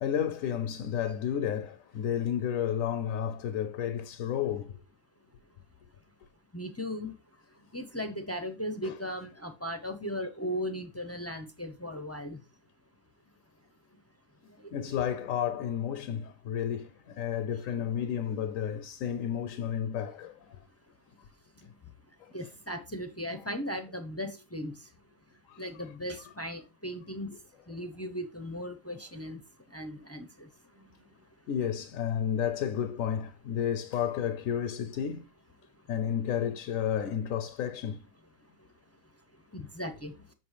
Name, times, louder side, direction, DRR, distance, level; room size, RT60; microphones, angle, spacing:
voice 1, 0.0-4.8 8.8-9.0 14.7-20.3 22.2-22.3 25.5-25.7 31.5-35.2 35.9-38.0, left 9 dB, 75° left, 1.0 m, -31 dB
voice 2, 6.5-7.1 7.7-12.4 22.3-24.7 25.6-27.3 27.7-29.4 29.7-30.3 39.5-40.1, equal, 20° left, 0.4 m, -37 dB
7.7 x 6.5 x 3.3 m
omnidirectional pair, 1.5 m